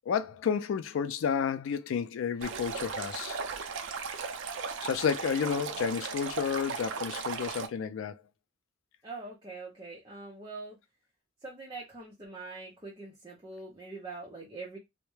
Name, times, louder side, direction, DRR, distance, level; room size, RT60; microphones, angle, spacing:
voice 1, 0.1-3.4 4.8-8.2, left 7 dB, 80° left, 0.3 m, -31 dB
Stream, 2.4-7.7, right 5 dB, 70° right, 0.4 m, -37 dB
voice 2, 5.3-5.8 9.0-10.8 11.4-14.8, right 3 dB, 20° right, 0.6 m, -43 dB
2.2 x 2.1 x 3.1 m
head